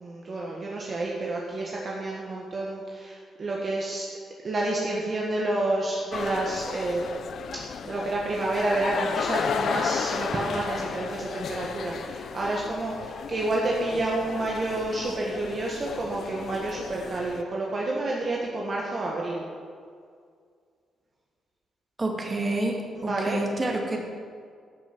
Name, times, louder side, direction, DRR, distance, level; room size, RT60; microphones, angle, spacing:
voice 1, 0.0-4.1 4.4-7.1 7.8-19.4 23.0-23.4, right 2 dB, 45° right, -3 dB, 1.6 m, -29 dB
sound 1, 6.1-17.4, left 7 dB, 65° left, 0.5 m, -34 dB
voice 2, 22.0-24.0, right 2 dB, 30° right, 1 dB, 2.1 m, -28 dB
13.5 x 6.4 x 6.0 m, 2.1 s
cardioid pair, 80°, 0 cm